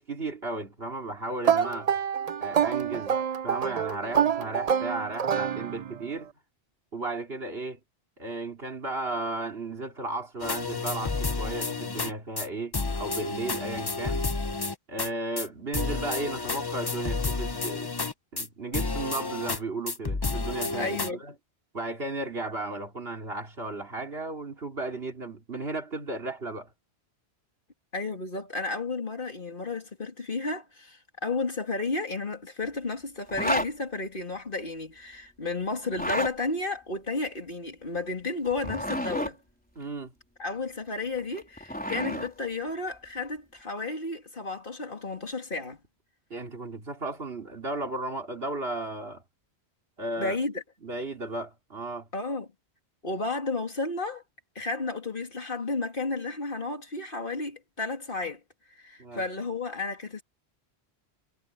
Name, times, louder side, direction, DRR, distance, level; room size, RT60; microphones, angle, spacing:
voice 1, 0.0-1.9 2.4-3.1 3.4-6.3 6.9-7.8 8.2-14.2 14.9-17.9 18.3-21.3 21.7-26.7 39.7-40.1 46.3-49.2 50.0-50.4 50.8-52.1 59.0-59.2, right 2 dB, 65° right, 3.1 m, -35 dB
sound 1, 1.4-6.1, right 8 dB, 45° right, 0.6 m, -27 dB
sound 2, 10.4-12.1 12.4-12.5 12.7-15.1 15.4-15.5 15.7-18.5 18.7-19.6 19.9-21.1, left 3 dB, 25° left, 0.8 m, -30 dB
voice 2, 20.8-21.2 27.9-39.4 40.4-45.8 50.2-50.6 52.1-52.5 53.0-54.2 54.5-58.4 58.7-60.2, left 3 dB, 55° left, 2.9 m, -32 dB
Zipper (clothing), 33.3-33.7 35.8-36.3 38.5-39.3 41.2-42.3, equal, 10° left, 4.2 m, -30 dB
omnidirectional pair, 1.1 m